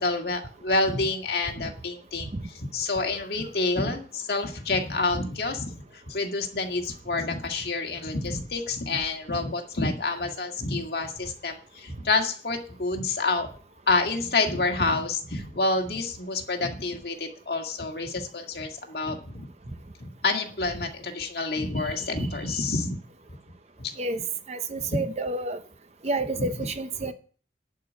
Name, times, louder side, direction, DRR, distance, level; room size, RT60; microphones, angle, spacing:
voice 1, 0.0-13.5 13.9-19.4 20.0-23.0 23.8-23.9 24.8-25.0 26.3-26.5, left 3 dB, 60° left, 3 dB, 1.9 m, -28 dB
voice 2, 24.5-25.6 26.0-27.1, right 2 dB, 40° right, 10 dB, 0.7 m, -29 dB
11.0 x 4.9 x 8.4 m, 0.41 s
head